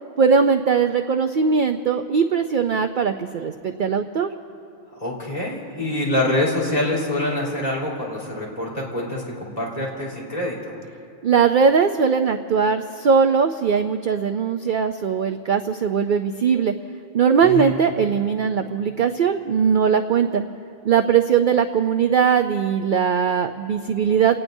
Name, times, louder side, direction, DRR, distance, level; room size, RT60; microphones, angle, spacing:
voice 1, 0.2-4.3 11.2-16.7 17.1-20.4 20.8-24.4, right 6 dB, 60° right, 7 dB, 0.5 m, -20 dB
voice 2, 4.9-10.7 17.4-17.7, left 1 dB, 30° left, -5 dB, 3.9 m, -25 dB
29.0 x 18.5 x 2.7 m, 2.9 s
omnidirectional pair, 1.4 m